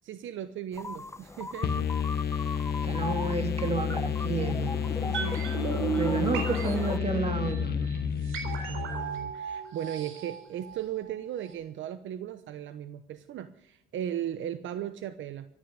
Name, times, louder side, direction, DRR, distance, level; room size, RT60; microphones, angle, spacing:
voice 1, 0.0-1.9 5.0-5.4 8.7-15.5, right 10 dB, 75° right, 11 dB, 1.0 m, -37 dB
sound 1, 0.7-7.0, left 3 dB, 15° left, 0.9 m, -39 dB
sound 2, 1.6-9.3, left 8 dB, 55° left, 1.3 m, -31 dB
voice 2, 2.8-4.9 6.0-8.0, right 3 dB, 30° right, 5 dB, 3.3 m, -31 dB
sound 3, 5.1-11.2 11.5-11.6, right 6 dB, 90° right, 4.2 m, -35 dB
15.0 x 9.9 x 9.7 m, 0.79 s
cardioid pair, 90°, 20 cm